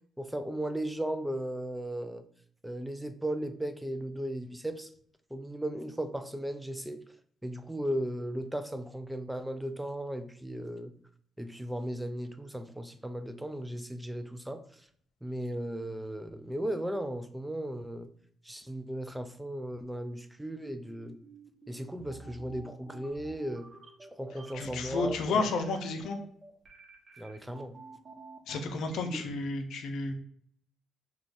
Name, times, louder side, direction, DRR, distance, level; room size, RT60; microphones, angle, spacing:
voice 1, 0.2-2.2 2.6-4.9 5.3-7.0 7.4-10.9 11.4-14.6 15.2-18.1 18.5-21.2 21.7-23.7 24.2-25.5 27.2-27.7, right 1 dB, 5° right, 8 dB, 0.3 m, -36 dB
sound 1, 20.6-29.0, right 3 dB, 35° right, 0.9 m, -50 dB
voice 2, 24.5-26.2 28.5-30.1, left 3 dB, 80° left, 6 dB, 0.5 m, -32 dB
3.8 x 2.3 x 2.4 m, 0.63 s
cardioid pair, 90°, 0 cm